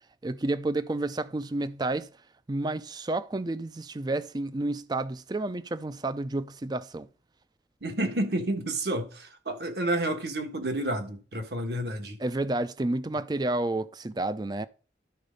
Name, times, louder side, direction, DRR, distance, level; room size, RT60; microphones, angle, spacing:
voice 1, 0.2-2.1 2.5-7.1 12.2-14.7, right 2 dB, 25° right, 0.4 m, -30 dB
voice 2, 7.8-12.2, right 1 dB, 60° right, 1.5 m, -30 dB
11.5 x 4.2 x 5.1 m
head